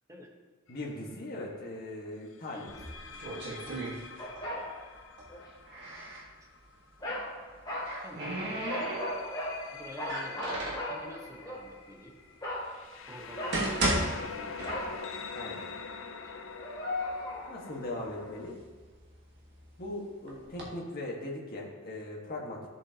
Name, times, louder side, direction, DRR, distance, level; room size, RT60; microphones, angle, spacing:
sound 1, 0.7-1.0 2.5-7.2 8.0-18.5, left 4 dB, 65° left, 0.6 m, -45 dB
voice 1, 0.7-2.7 15.3-15.7 17.5-18.6 19.8-22.6, left 1 dB, 50° left, -2 dB, 1.6 m, -39 dB
voice 2, 2.5-3.2 3.6-3.9 4.4-4.7 5.5-5.6 8.0-9.3 9.7-12.2 13.1-14.7 16.2-16.3, equal, 15° right, 0 dB, 1.2 m, -50 dB
sound 2, 2.7-4.6 4.8-6.3 7.4-9.4 10.0-10.9 11.7-11.8 12.5-12.6 13.2-15.2 15.5-15.6 16.3-16.4 16.8-17.4 18.0-19.6 20.3-20.6, right 1 dB, 60° right, 1.7 m, -35 dB
sound 3, 4.2-4.7 5.3-5.5 7.0-7.3 7.7-7.9 8.6-9.6 10.0-11.6 12.4-12.7 13.4-13.8 14.6-15.0 16.6-17.5, left 1 dB, 20° left, 2.8 m, -36 dB
13.0 x 7.2 x 2.9 m, 1.5 s
head